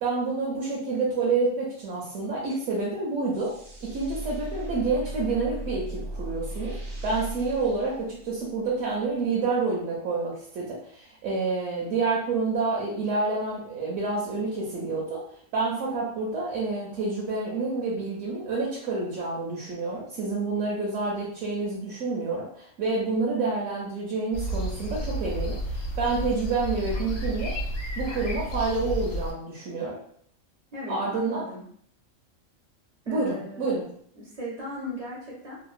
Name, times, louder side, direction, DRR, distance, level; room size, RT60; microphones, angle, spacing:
voice 1, 0.0-3.5 3.8-6.8 7.0-15.2 15.5-27.6 28.0-30.0 30.9-31.5 33.1-33.9, right 3 dB, 70° right, -4 dB, 1.0 m, -28 dB
sound 1, 3.3-8.7, right 2 dB, 85° right, 1.4 m, -37 dB
sound 2, 24.3-29.3, right 1 dB, 60° left, 0.8 m, -31 dB
voice 2, 30.7-31.6 33.0-33.8 34.2-35.6, left 1 dB, 50° right, -6 dB, 0.5 m, -38 dB
2.9 x 2.0 x 2.4 m, 0.63 s
omnidirectional pair, 1.4 m